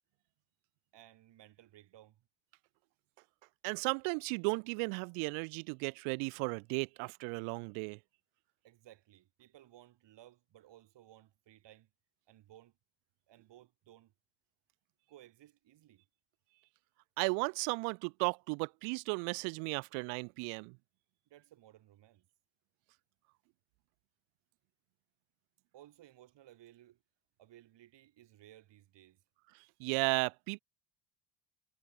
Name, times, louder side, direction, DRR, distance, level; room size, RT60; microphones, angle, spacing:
voice 1, 0.9-2.2 8.6-11.9 12.3-12.7 13.3-14.1 15.1-16.0 21.3-22.3 25.7-27.0 27.4-29.2, right 13 dB, 60° right, 4.1 m, -59 dB
voice 2, 3.6-8.0 17.2-20.8 29.8-30.6, right 39 dB, 80° right, 0.6 m, -35 dB
supercardioid pair, 85°, 48 cm